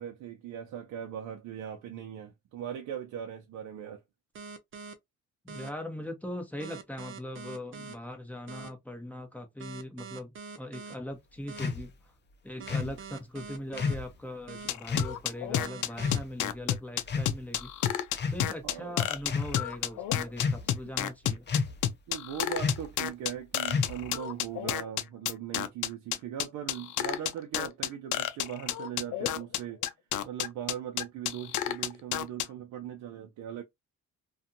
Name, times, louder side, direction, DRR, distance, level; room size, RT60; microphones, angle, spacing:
voice 1, 0.0-4.0 12.6-12.9 18.6-19.0 22.1-29.8 30.2-33.6, right 9 dB, 80° right, 0.6 m, -39 dB
sound 1, 4.3-4.9 5.5-5.7 6.6-7.9 8.5-8.7 9.6-10.9 11.5-11.7 12.6-13.9 14.5-14.7 15.6-16.2, right 5 dB, 40° right, 0.7 m, -43 dB
voice 2, 5.4-12.1 12.4-18.0 18.3-21.5, left 1 dB, 5° left, 1.0 m, -40 dB
sound 2, 11.6-11.8 12.7-13.0 13.8-14.1 14.9-15.1 16.0-16.3 17.0-17.6 18.1-18.5 19.2-19.5 20.4-20.8 21.5-21.9 22.6-22.9 23.7-24.1, left 4 dB, 35° left, 0.6 m, -30 dB
sound 3, 14.7-32.5, left 11 dB, 80° left, 0.5 m, -30 dB
2.6 x 2.4 x 2.7 m
cardioid pair, 90°, 30 cm